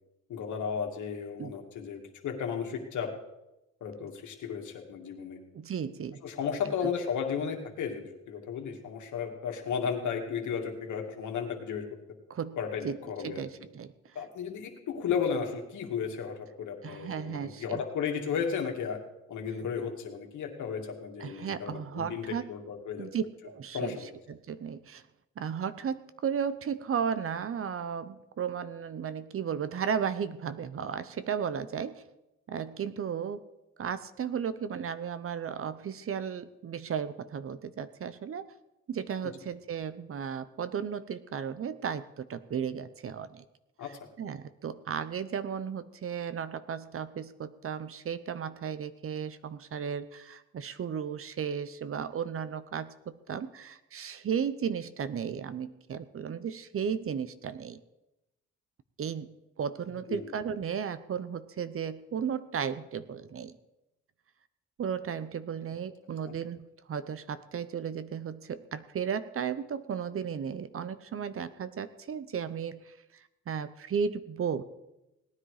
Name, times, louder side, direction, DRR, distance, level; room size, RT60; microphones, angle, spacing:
voice 1, 0.3-3.1 3.8-5.4 6.2-11.9 12.6-13.4 14.1-19.0 19.3-23.1 23.7-24.1 43.8-43.9 60.1-60.2 66.2-66.3, left 7 dB, 75° left, 3 dB, 2.4 m, -34 dB
voice 2, 5.5-6.2 12.3-12.6 12.8-13.0 13.2-13.9 16.8-17.8 21.2-22.5 23.0-25.0 25.4-32.0 32.5-33.4 33.8-38.5 38.9-43.4 43.8-57.8 59.0-63.5 64.8-74.6, right 7 dB, 45° right, 14 dB, 0.9 m, -35 dB
18.0 x 10.0 x 5.0 m, 0.94 s
cardioid pair, 90°, 30 cm